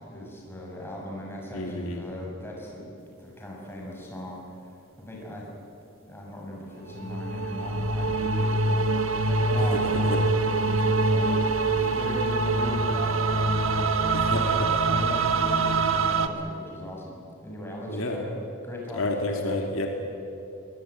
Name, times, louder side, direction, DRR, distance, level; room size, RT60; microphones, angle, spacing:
voice 1, 0.0-5.5 6.0-10.0 10.6-18.3 18.6-19.6, left 1 dB, 10° left, -2 dB, 6.5 m, -39 dB
voice 2, 1.5-2.0 9.5-10.2 14.1-14.8 17.9-18.2 18.9-19.9, left 2 dB, 65° left, 2 dB, 2.4 m, -30 dB
sound 1, 6.9-16.3, right 3 dB, 65° right, 1.5 m, -24 dB
23.5 x 21.0 x 9.3 m, 2.6 s
head